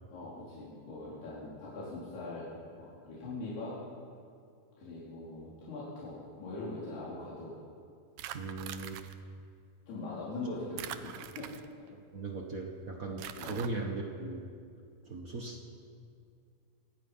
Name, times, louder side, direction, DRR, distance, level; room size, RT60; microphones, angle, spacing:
voice 1, 0.1-2.5 2.8-3.8 4.8-7.5 9.9-11.5 13.4-13.6, left 2 dB, 85° left, -8 dB, 6.0 m, -41 dB
sound 1, 8.2-9.1 10.8-11.9 13.2-13.7, right 11 dB, 75° right, 2.3 m, -43 dB
voice 2, 8.3-9.0 11.9-14.4 15.0-15.7, right 3 dB, 90° right, 1 dB, 0.7 m, -38 dB
26.0 x 18.5 x 5.8 m, 2.3 s
omnidirectional pair, 4.5 m